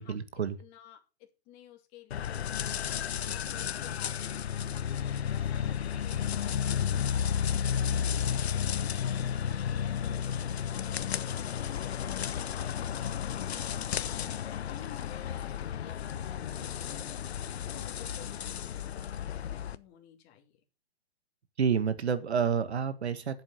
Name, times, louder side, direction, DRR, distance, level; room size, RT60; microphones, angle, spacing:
voice 1, 0.0-0.6 21.6-23.4, right 6 dB, 85° right, 12 dB, 1.8 m, -29 dB
voice 2, 0.6-9.1 9.6-13.6 14.3-20.6, left 11 dB, 30° left, 3 dB, 2.8 m, -55 dB
sound 1, 2.1-19.8, left 8 dB, 75° left, 1.0 m, -32 dB
9.9 x 7.7 x 6.7 m, 0.33 s
hypercardioid pair, 135°, 32 cm